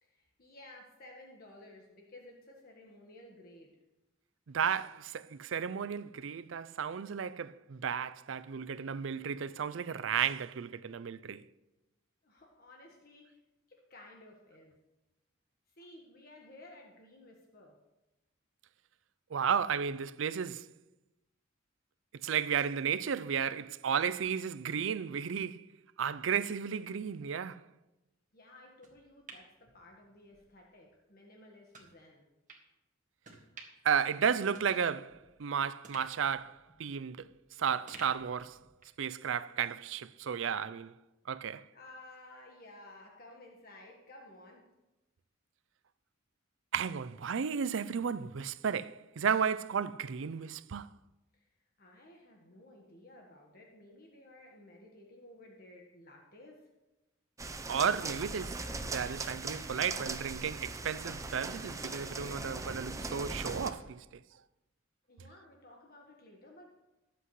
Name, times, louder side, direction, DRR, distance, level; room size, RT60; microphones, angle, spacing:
voice 1, 0.0-3.7 12.2-13.4 13.7-14.7 15.7-17.7 28.3-32.3 41.7-44.6 51.3-51.5 51.8-56.7 65.1-66.8, left 1 dB, 45° left, 1.5 m, -55 dB
voice 2, 4.5-11.4 19.3-20.7 22.2-25.7 26.0-27.6 33.8-37.2 37.6-38.6 39.0-40.9 41.3-41.7 46.7-50.9 57.7-58.6 58.9-64.0, right 7 dB, 65° right, 0.4 m, -33 dB
sound 1, 28.8-30.4 30.8-30.9 31.7-31.9 32.5-32.6 33.2-33.9 34.2-34.3 34.5-35.4 35.8-37.4 37.9-39.0 39.4-39.5, right 4 dB, 40° right, 1.8 m, -53 dB
sound 2, 57.4-63.7, right 3 dB, 15° right, 0.6 m, -40 dB
20.5 x 7.9 x 3.2 m
head